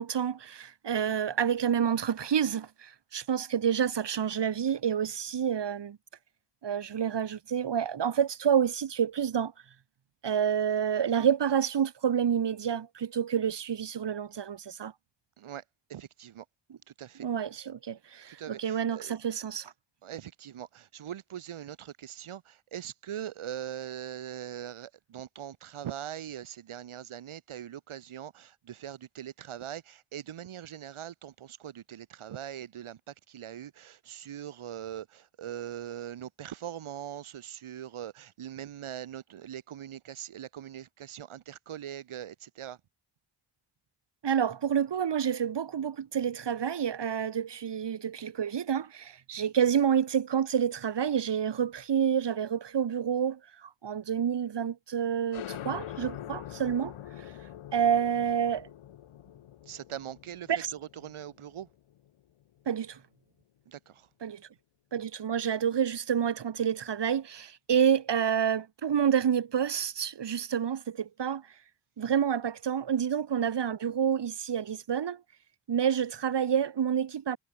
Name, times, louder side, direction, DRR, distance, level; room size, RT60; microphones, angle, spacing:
voice 1, 0.0-6.0 6.6-9.5 10.2-14.9 17.2-19.7 44.2-56.9 57.7-58.7 60.5-60.7 62.6-63.0 64.2-64.4 64.9-71.4 72.0-75.2 75.7-77.4, right 8 dB, 55° right, 1.7 m, -28 dB
voice 2, 15.9-16.4 16.9-17.3 18.3-19.2 20.0-42.8 59.6-61.7 63.7-64.1, right 10 dB, 85° right, 4.7 m, -41 dB
sound 1, 55.3-62.6, left 11 dB, 85° left, 7.0 m, -44 dB
supercardioid pair, 50°, 49 cm